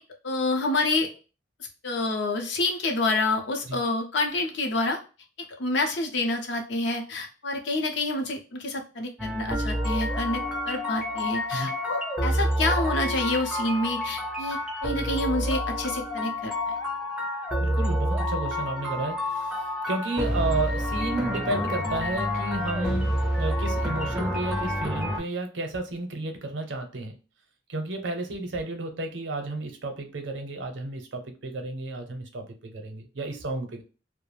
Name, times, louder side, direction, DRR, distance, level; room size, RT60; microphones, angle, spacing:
voice 1, 0.2-1.1 1.8-5.0 5.4-16.8, left 2 dB, 65° left, 3 dB, 0.6 m, -28 dB
sound 1, 9.2-25.2, equal, 5° right, 0.4 m, -28 dB
voice 2, 17.6-27.2 27.7-33.8, right 2 dB, 75° right, 5 dB, 0.6 m, -32 dB
2.3 x 2.0 x 3.1 m, 0.33 s
head